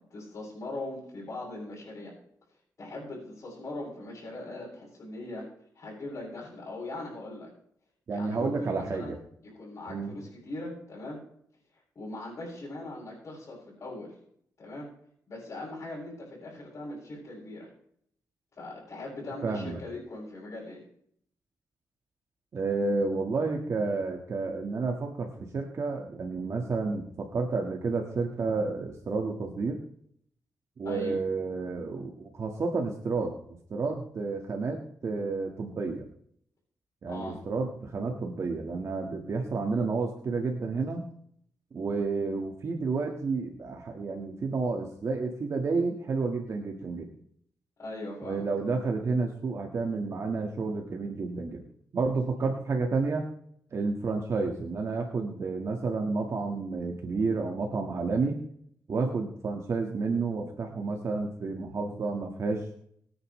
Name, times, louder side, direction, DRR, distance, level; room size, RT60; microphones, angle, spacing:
voice 1, 0.0-2.1 2.8-5.5 5.7-7.5 8.1-9.1 9.4-11.2 11.9-14.2 14.6-14.9 15.3-17.7 18.5-20.8 30.8-31.2 37.1-37.4 47.8-48.5, left 2 dB, 45° left, -9 dB, 6.5 m, -40 dB
voice 2, 8.1-9.2 9.9-10.2 19.4-19.8 22.5-29.8 30.8-36.0 37.0-41.0 41.7-47.1 48.2-51.6 51.9-53.3 53.7-58.4 58.9-62.7, right 4 dB, 45° right, 2 dB, 1.7 m, -30 dB
22.5 x 9.7 x 3.2 m, 0.66 s
wide cardioid pair, 135°, 7 cm